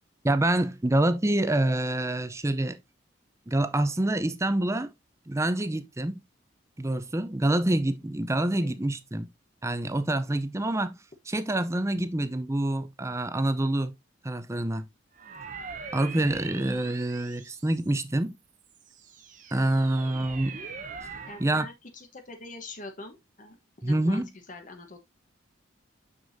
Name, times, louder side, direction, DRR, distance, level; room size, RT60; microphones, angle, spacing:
voice 1, 0.2-2.8 3.5-4.9 5.3-6.2 6.8-9.3 9.6-11.0 11.3-13.9 14.2-14.8 15.9-18.3 19.5-20.6 21.4-21.7 23.8-24.3, right 1 dB, 15° right, 0.6 m, -26 dB
sound 1, 15.1-18.1 18.7-21.5, right 5 dB, 40° right, 0.9 m, -42 dB
voice 2, 21.3-25.0, left 3 dB, 40° left, 1.1 m, -43 dB
6.8 x 6.2 x 2.7 m
head